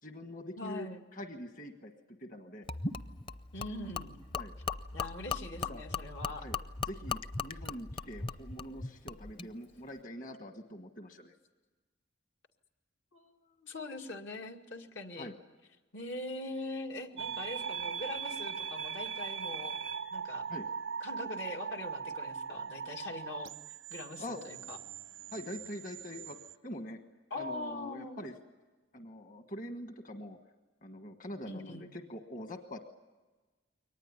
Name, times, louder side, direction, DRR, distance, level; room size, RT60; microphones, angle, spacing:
voice 1, 0.0-0.9 1.1-1.9 2.2-2.7 4.3-4.5 5.6-5.8 6.4-6.6 6.9-11.3 15.2-15.3 20.5-20.7 24.2-24.4 25.3-26.4 26.6-27.0 27.3-28.3 28.9-30.4 30.8-32.8, left 1 dB, 45° left, 6 dB, 1.4 m, -44 dB
voice 2, 0.6-1.0 3.5-4.1 4.9-6.5 13.1-15.3 15.9-19.8 20.1-20.5 21.0-23.5 23.9-24.8 27.3-28.2 31.5-31.9, left 2 dB, 80° left, 3 dB, 2.2 m, -42 dB
Gurgling / Liquid, 2.7-9.5, left 4 dB, 30° left, 0.7 m, -39 dB
sound 1, 17.2-26.5, right 6 dB, 90° right, 0.8 m, -40 dB
23.0 x 19.5 x 9.9 m, 1.2 s
head